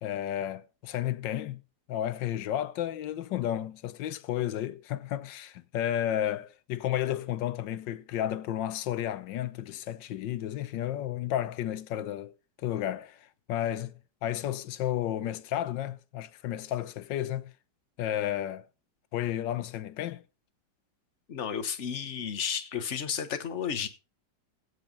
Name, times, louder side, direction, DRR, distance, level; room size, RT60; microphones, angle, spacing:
voice 1, 0.0-1.6 1.9-12.3 12.6-17.5 18.0-18.7 19.1-20.2, left 11 dB, 75° left, 1.4 m, -32 dB
voice 2, 21.3-23.9, left 7 dB, 45° left, 1.3 m, -32 dB
16.0 x 5.5 x 5.2 m
omnidirectional pair, 2.0 m